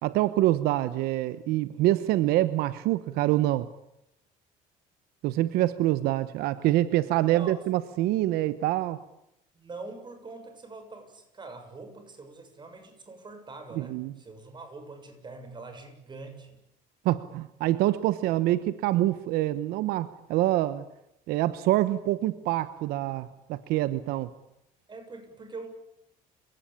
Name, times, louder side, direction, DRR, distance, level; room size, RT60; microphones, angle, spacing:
voice 1, 0.0-3.7 5.2-9.0 13.8-14.1 17.0-20.8 21.3-24.3, right 15 dB, 80° right, 14 dB, 1.0 m, -26 dB
voice 2, 7.0-7.6 9.5-16.6 24.9-25.7, right 3 dB, 30° right, 7 dB, 7.1 m, -44 dB
30.0 x 18.0 x 8.7 m, 0.82 s
cardioid pair, 110°, 16 cm